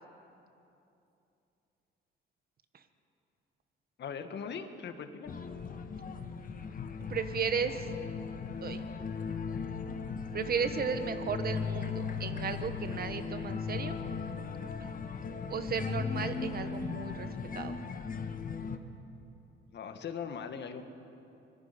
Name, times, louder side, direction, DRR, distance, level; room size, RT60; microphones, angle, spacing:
voice 1, 4.0-5.3 19.7-20.8, left 6 dB, 60° left, 8 dB, 1.6 m, -40 dB
sound 1, 5.3-18.8, left 5 dB, 45° left, 1.4 m, -37 dB
voice 2, 7.1-7.8 8.6-8.8 10.3-14.0 15.5-17.3 17.5-17.7, right 6 dB, 50° right, 9 dB, 1.5 m, -34 dB
25.0 x 20.0 x 5.3 m, 2.8 s
cardioid pair, 90°, 20 cm